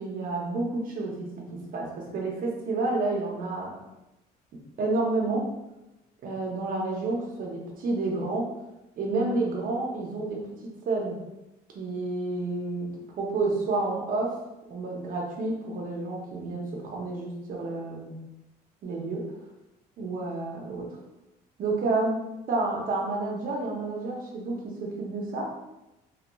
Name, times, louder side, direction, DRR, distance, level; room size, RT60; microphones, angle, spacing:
voice 1, 0.0-3.7 4.8-5.5 6.2-8.5 9.0-10.4 10.9-11.2 11.7-12.9 13.2-14.4 14.7-18.1 18.8-19.3 20.0-21.0 21.6-25.5, right 3 dB, 55° right, -1 dB, 0.7 m, -30 dB
2.8 x 2.3 x 2.2 m, 0.96 s
cardioid pair, 110°, 17 cm